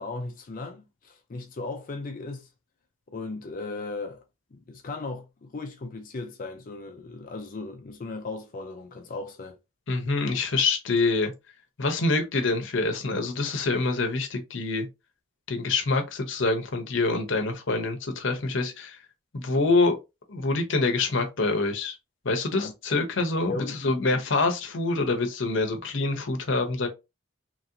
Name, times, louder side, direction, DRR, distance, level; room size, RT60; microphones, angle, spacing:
voice 1, 0.0-2.5 3.1-4.2 4.5-9.6 22.6-23.0 23.5-23.8 24.1-24.2, left 3 dB, 40° left, 0.4 m, -37 dB
voice 2, 9.9-11.3 11.8-14.9 15.5-19.0 19.3-20.0 20.3-22.0 22.2-23.5 23.8-26.9, left 3 dB, 60° left, 0.7 m, -26 dB
2.9 x 2.8 x 2.6 m
head